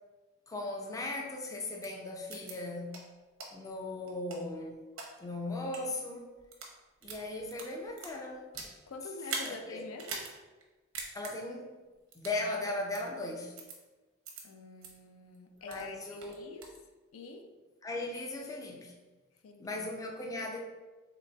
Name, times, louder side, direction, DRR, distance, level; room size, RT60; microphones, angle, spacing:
voice 1, 0.5-2.9 3.5-4.8 5.2-6.3 7.0-8.5 9.4-9.8 11.1-11.7 12.1-13.5 15.6-16.5 17.8-18.9 19.6-20.6, left 2 dB, 15° left, 0 dB, 0.3 m, -38 dB
sound 1, 1.8-1.9 2.3-2.5 2.9-3.0 3.4-3.5 4.1-5.1 5.6-5.8 6.4-6.7 7.0-8.7 9.2-9.5 10.0-10.3 10.6-10.7 10.9-11.3 12.1-12.4 12.9-13.0 13.6-13.8 14.2-14.4 14.8-14.9 15.3-15.9 16.2-16.8, right 4 dB, 90° right, 0.7 m, -41 dB
voice 2, 8.9-10.2 14.4-16.7 17.1-17.4 19.4-19.8, left 3 dB, 85° left, 5 dB, 0.4 m, -46 dB
4.0 x 3.1 x 2.2 m, 1.2 s
head